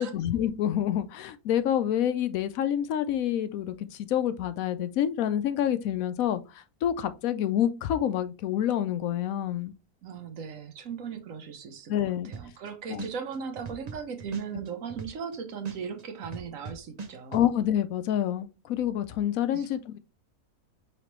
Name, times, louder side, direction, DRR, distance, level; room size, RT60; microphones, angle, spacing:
voice 1, 0.0-9.7 11.9-12.3 12.9-13.0 17.3-20.0, left 10 dB, 70° left, 1.0 m, -28 dB
voice 2, 10.0-17.4 19.5-19.7, right 6 dB, 65° right, 1.1 m, -38 dB
sound 1, 12.3-12.7 13.0-15.3 15.6-17.4, right 4 dB, 40° right, 0.6 m, -40 dB
5.0 x 3.3 x 3.0 m
omnidirectional pair, 1.6 m